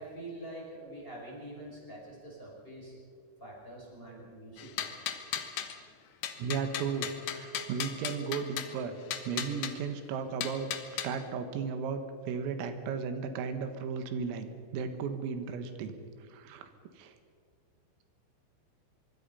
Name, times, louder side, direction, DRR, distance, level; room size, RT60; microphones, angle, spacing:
voice 1, 0.0-2.9 3.4-4.9, right 1 dB, 10° left, -3 dB, 5.0 m, -45 dB
sound 1, 4.6-5.8 6.2-8.7 9.1-9.7 10.4-11.1, left 10 dB, 85° left, 1.8 m, -36 dB
voice 2, 6.4-15.9 16.3-16.7 17.0-17.1, right 5 dB, 85° right, 8 dB, 4.2 m, -35 dB
24.5 x 24.0 x 5.6 m, 2.1 s
omnidirectional pair, 5.9 m